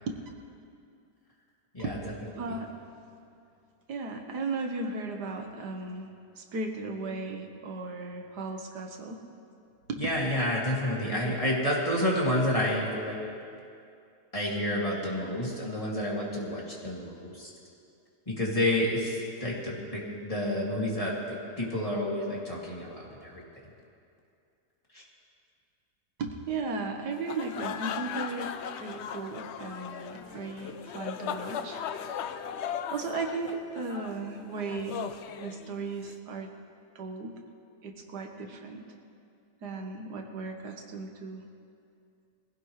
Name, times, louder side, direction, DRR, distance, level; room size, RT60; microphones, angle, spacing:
voice 1, 1.8-2.7 3.9-6.1 6.4-9.2 9.9-10.0 26.2-31.8 32.1-32.5 32.9-35.0 35.4-36.5 37.0-37.3 37.8-38.8 39.6-41.4, right 3 dB, 85° right, 3 dB, 1.8 m, -36 dB
voice 2, 10.0-13.2 14.3-17.5 18.3-23.4 24.9-25.0, left 1 dB, 20° left, -5 dB, 2.4 m, -29 dB
sound 1, 27.1-36.1, left 8 dB, 70° left, 0.6 m, -38 dB
22.0 x 16.0 x 3.2 m, 2.5 s
omnidirectional pair, 1.7 m